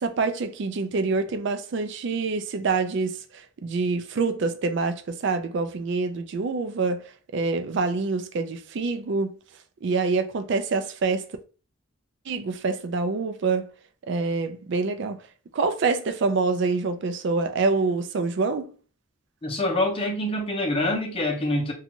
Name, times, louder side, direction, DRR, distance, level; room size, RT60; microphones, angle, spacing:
voice 1, 0.0-7.0 7.3-9.4 9.8-11.3 12.3-13.7 14.1-15.2 15.5-18.7, right 4 dB, 55° right, 0.4 m, -26 dB
voice 2, 19.4-21.7, left 1 dB, 25° left, 0.6 m, -25 dB
2.5 x 2.3 x 2.9 m
head